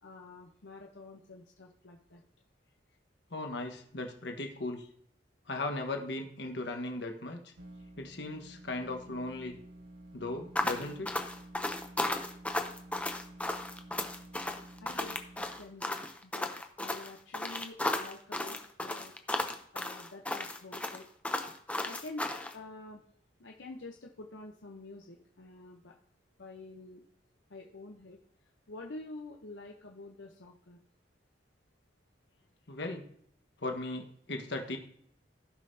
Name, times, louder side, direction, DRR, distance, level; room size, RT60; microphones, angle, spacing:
voice 1, 0.0-2.2 14.8-15.2 15.5-16.5 16.8-19.1 19.7-21.0 21.8-23.0 23.4-25.9 26.4-27.0 27.5-28.2 28.7-30.8, left 2 dB, 85° left, 0 dB, 0.8 m, -48 dB
voice 2, 3.3-4.9 5.5-7.5 8.0-9.6 10.1-11.1 32.7-33.0 33.6-34.8, left 2 dB, 70° left, 4 dB, 1.3 m, -37 dB
sound 1, 7.6-15.6, right 1 dB, 75° right, 2.0 m, -51 dB
sound 2, 10.6-22.5, left 2 dB, 5° left, 0.6 m, -34 dB
15.5 x 5.5 x 2.7 m, 0.66 s
head